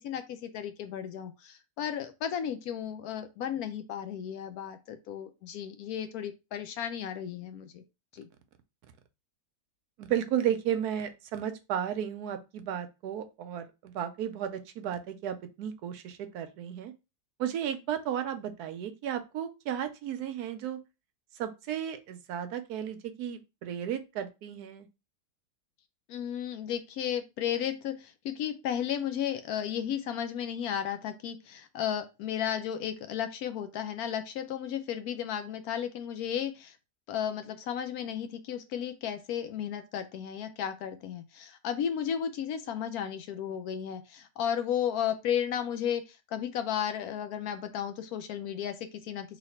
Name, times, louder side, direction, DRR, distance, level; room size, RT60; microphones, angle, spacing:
voice 1, 0.0-7.8 8.1-8.3 26.1-36.8 37.1-49.4, left 9 dB, 70° left, 9 dB, 1.0 m, -34 dB
voice 2, 10.0-16.9 17.4-20.8 21.3-24.9, right 9 dB, 75° right, 9 dB, 1.1 m, -34 dB
3.1 x 2.8 x 4.1 m, 0.27 s
omnidirectional pair, 1.7 m